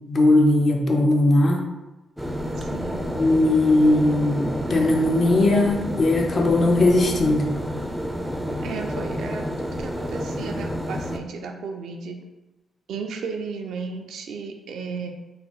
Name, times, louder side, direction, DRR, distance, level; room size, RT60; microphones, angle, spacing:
voice 1, 0.1-1.7 3.1-7.5, left 2 dB, 55° left, 1 dB, 0.5 m, -19 dB
sound 1, 2.2-11.2, equal, ahead, 0.4 m, -29 dB
voice 2, 2.6-3.1 8.6-12.2 12.9-15.1, right 5 dB, 75° right, 3 dB, 0.3 m, -34 dB
3.2 x 2.0 x 2.9 m, 1.1 s
supercardioid pair, 50°, 0 cm